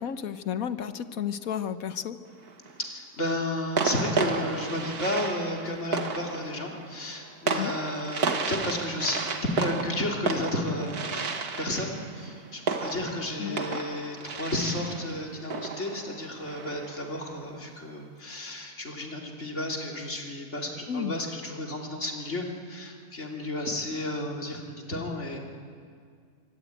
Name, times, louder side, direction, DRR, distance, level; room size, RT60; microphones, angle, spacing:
voice 1, 0.0-2.2 7.6-7.7 13.4-13.9 20.9-21.2, left 8 dB, 65° left, 11 dB, 1.4 m, -32 dB
sound 1, 2.2-2.8 3.8-17.2, right 4 dB, 85° right, 2.2 m, -32 dB
voice 2, 2.9-25.4, left 1 dB, 50° left, 0 dB, 3.4 m, -32 dB
24.5 x 24.0 x 9.2 m, 2.2 s
omnidirectional pair, 1.6 m